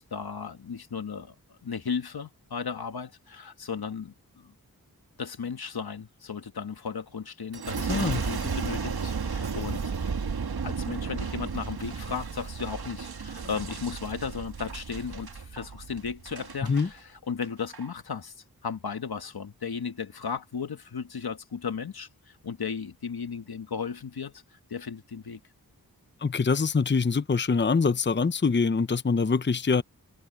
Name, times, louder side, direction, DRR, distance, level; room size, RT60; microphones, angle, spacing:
voice 1, 0.0-4.5 5.2-9.8 10.6-18.3 18.6-25.4, left 6 dB, 85° left, 1.6 m, -35 dB
Boom, 7.5-16.9 17.4-17.9, right 5 dB, 90° right, 1.8 m, -33 dB
voice 2, 7.9-8.2 16.7-16.9 26.2-29.8, left 4 dB, 30° left, 0.7 m, -24 dB
wide cardioid pair, 65°, 37 cm